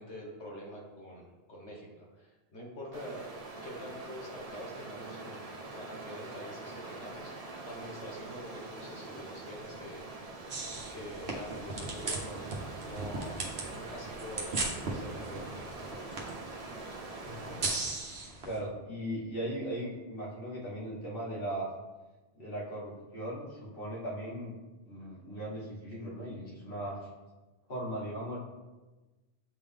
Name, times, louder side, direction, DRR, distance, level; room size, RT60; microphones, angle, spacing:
voice 1, 0.0-3.3 3.6-7.3 7.6-10.0 10.9-12.5 12.8-13.4 13.7-15.8, equal, 80° left, -2 dB, 1.6 m, -45 dB
Stream, 2.9-18.0, right 3 dB, 40° right, 0.8 m, -44 dB
sound 1, 10.5-18.6, right 3 dB, 60° right, 1.2 m, -38 dB
voice 2, 17.2-17.6 18.4-21.7 22.3-24.5 24.8-27.1 27.7-28.4, right 1 dB, 55° left, -6 dB, 2.0 m, -38 dB
7.6 x 3.8 x 3.5 m, 1.2 s
omnidirectional pair, 1.1 m